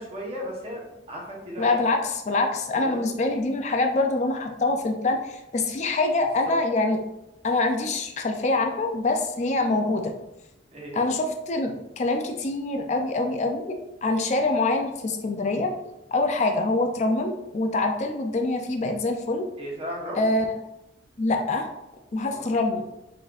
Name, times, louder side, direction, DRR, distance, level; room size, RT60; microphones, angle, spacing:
voice 1, 0.0-1.8 2.8-3.1 6.5-6.6 9.7-9.8 10.7-11.0 19.6-20.3 22.1-22.5, equal, 35° right, -3 dB, 1.1 m, -36 dB
voice 2, 1.6-7.0 7.4-10.1 10.9-13.8 14.0-15.7 16.1-19.5 20.2-20.5 21.2-21.7 22.1-22.8, left 2 dB, 40° left, 4 dB, 0.4 m, -25 dB
4.1 x 3.8 x 2.4 m, 0.91 s
head